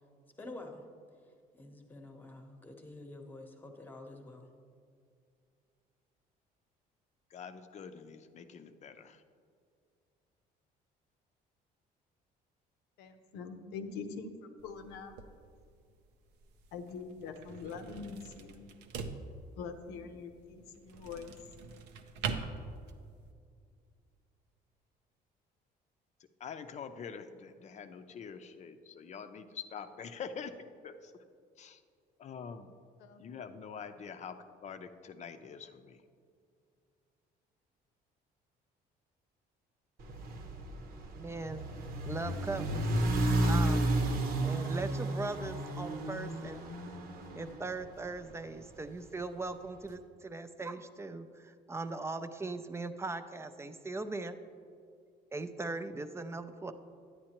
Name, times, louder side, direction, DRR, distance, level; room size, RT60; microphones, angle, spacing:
voice 1, 0.4-0.8 1.6-4.5, left 2 dB, 10° left, 3 dB, 1.0 m, -48 dB
voice 2, 7.3-9.2 26.4-30.5 30.8-31.1 31.6-31.8 32.2-32.7 33.2-34.4 34.6-36.0, left 6 dB, 45° left, 9 dB, 0.6 m, -45 dB
voice 3, 13.0-15.2 16.7-18.7 19.6-21.3 33.0-33.2, left 5 dB, 90° left, 7 dB, 0.8 m, -44 dB
sound 1, 14.6-23.3, right 5 dB, 90° right, 0.6 m, -44 dB
sound 2, 40.0-48.3, right 1 dB, 60° right, 0.9 m, -32 dB
voice 4, 41.2-41.6 42.1-42.9 43.4-43.9 44.4-46.7 47.3-54.4 55.3-56.7, right 3 dB, 15° right, 9 dB, 0.4 m, -39 dB
9.8 x 9.4 x 2.9 m, 2.3 s
cardioid pair, 110°, 17 cm